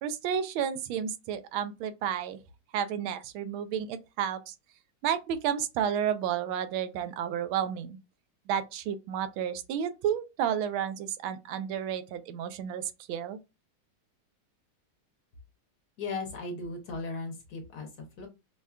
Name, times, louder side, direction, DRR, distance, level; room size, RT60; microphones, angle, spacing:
voice 1, 0.0-2.4 2.7-4.5 5.0-8.0 8.5-13.4, right 9 dB, 85° right, 1.4 m, -31 dB
voice 2, 16.0-18.3, left 3 dB, 60° left, 1.2 m, -37 dB
5.4 x 2.2 x 2.3 m
omnidirectional pair, 2.2 m